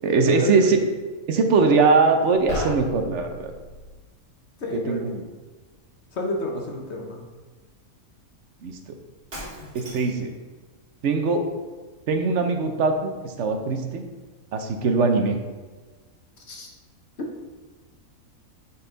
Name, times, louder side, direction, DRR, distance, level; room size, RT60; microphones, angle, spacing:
voice 1, 0.0-0.8 1.3-3.5 4.7-5.3 8.6-8.8 9.7-10.3 11.0-11.4 12.1-14.0 14.5-15.4, right 4 dB, 60° right, 5 dB, 1.0 m, -21 dB
sound 1, 2.5-4.0, left 1 dB, 75° left, 2.0 m, -34 dB
voice 2, 4.6-5.2 6.1-7.2 16.5-16.8, left 1 dB, 55° left, 1 dB, 1.2 m, -31 dB
Shatter, 9.3-10.3, equal, 40° right, 2.2 m, -39 dB
9.0 x 4.1 x 3.9 m, 1.3 s
omnidirectional pair, 1.5 m